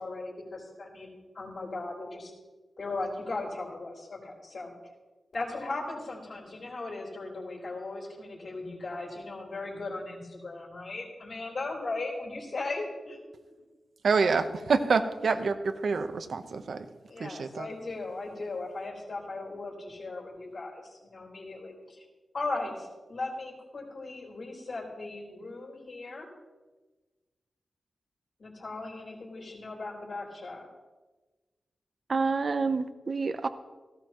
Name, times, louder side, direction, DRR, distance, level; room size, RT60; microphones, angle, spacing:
voice 1, 0.0-2.3 2.8-4.7 5.3-13.2 17.1-22.1 22.3-26.3 28.4-30.7, left 3 dB, 50° left, -3 dB, 4.1 m, -37 dB
voice 2, 14.0-16.9 17.2-17.7, right 4 dB, 70° right, 9 dB, 1.0 m, -27 dB
voice 3, 32.1-33.5, right 4 dB, 45° right, 10 dB, 0.6 m, -28 dB
17.0 x 16.5 x 3.1 m, 1.2 s
wide cardioid pair, 150°, 0 cm